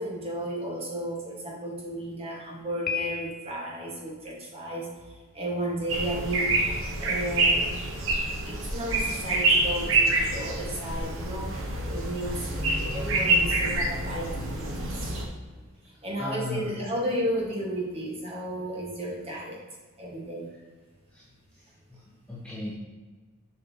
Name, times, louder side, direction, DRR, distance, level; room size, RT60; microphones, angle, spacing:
voice 1, 0.0-6.6 7.0-7.7 8.4-11.5 11.8-15.1 15.8-19.6 20.0-20.5, right 1 dB, 25° right, -3 dB, 1.4 m, -33 dB
Piano, 2.9-3.8, left 6 dB, 40° left, 0.5 m, -34 dB
sound 1, 5.9-15.3, right 2 dB, 65° right, 1.0 m, -27 dB
voice 2, 16.2-16.7 21.1-21.2 21.5-22.0 22.3-22.7, left 2 dB, 5° left, -8 dB, 1.0 m, -36 dB
7.1 x 5.2 x 2.8 m, 1.4 s
head